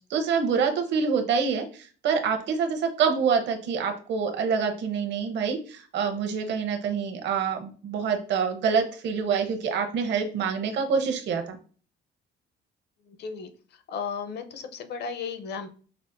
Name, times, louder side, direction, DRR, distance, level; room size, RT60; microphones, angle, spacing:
voice 1, 0.1-11.6, right 6 dB, 60° right, 5 dB, 0.8 m, -26 dB
voice 2, 13.1-13.5 13.9-15.7, left 6 dB, 55° left, 8 dB, 0.6 m, -34 dB
5.6 x 2.1 x 2.5 m, 0.40 s
cardioid pair, 135°, 20 cm